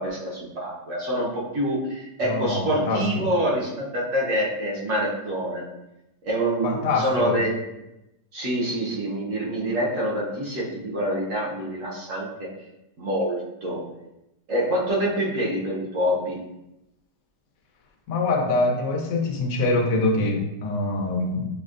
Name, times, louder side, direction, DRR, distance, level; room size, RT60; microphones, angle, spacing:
voice 1, 0.0-5.6 6.2-7.6 8.3-12.5 13.0-13.8 14.5-16.4, equal, 55° right, -5 dB, 1.0 m, -26 dB
voice 2, 2.2-3.3 6.6-7.4 18.1-21.5, left 2 dB, 90° left, 2 dB, 1.3 m, -24 dB
6.0 x 2.1 x 2.4 m, 0.91 s
omnidirectional pair, 1.8 m